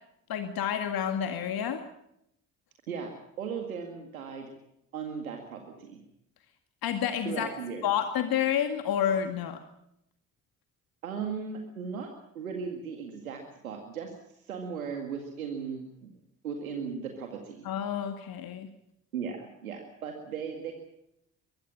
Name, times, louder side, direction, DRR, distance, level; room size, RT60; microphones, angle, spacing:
voice 1, 0.3-1.8 6.8-7.5 7.8-9.6 17.6-18.7, left 9 dB, 60° left, 7 dB, 2.1 m, -29 dB
voice 2, 3.4-4.5 4.9-6.0 7.3-7.9 11.0-12.1 12.3-16.1 16.4-17.7 19.1-20.7, right 6 dB, 90° right, 3 dB, 2.1 m, -37 dB
22.5 x 17.0 x 8.6 m, 0.79 s
hypercardioid pair, 45°, 41 cm